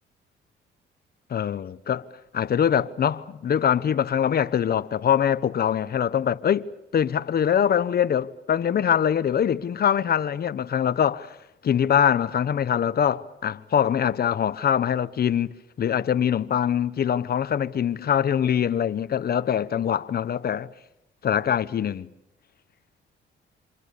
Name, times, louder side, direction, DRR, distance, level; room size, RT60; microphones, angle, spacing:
voice 1, 1.3-2.1 2.3-6.6 6.9-11.4 11.6-15.5 15.8-20.7 21.2-22.1, left 9 dB, 50° left, 1.0 m, -23 dB
28.5 x 27.0 x 6.9 m
cardioid pair, 90°, 20 cm